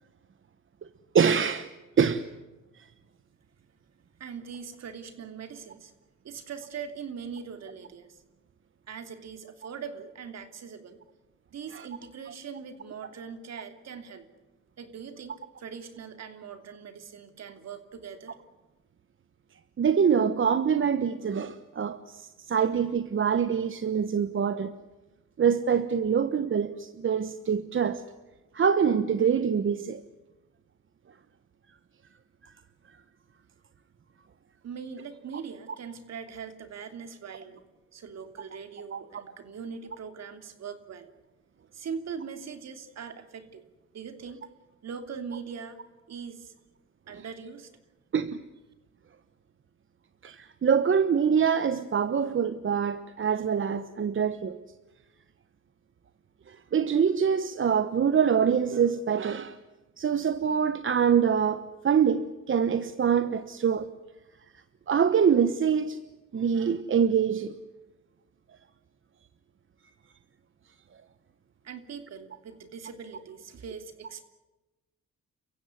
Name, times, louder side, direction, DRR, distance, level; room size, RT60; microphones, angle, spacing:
voice 1, 1.1-1.7 2.0-2.3 2.8-2.9 11.7-11.9 19.8-24.7 25.4-28.0 28.5-30.0 32.4-32.5 38.9-39.0 47.1-47.2 48.1-48.4 50.2-54.6 56.5-59.6 60.0-63.9 64.9-66.0 66.3-67.5, right 7 dB, 40° right, 1.2 m, -25 dB
voice 2, 4.2-5.9 6.2-8.2 8.9-11.0 11.5-14.3 14.8-18.4 34.6-37.6 37.9-41.1 41.7-43.6 43.9-44.5 44.8-45.8 46.1-46.5 47.1-47.7 71.6-74.2, right 6 dB, 60° right, 3.1 m, -41 dB
29.5 x 15.5 x 9.6 m
cardioid pair, 90°, 30 cm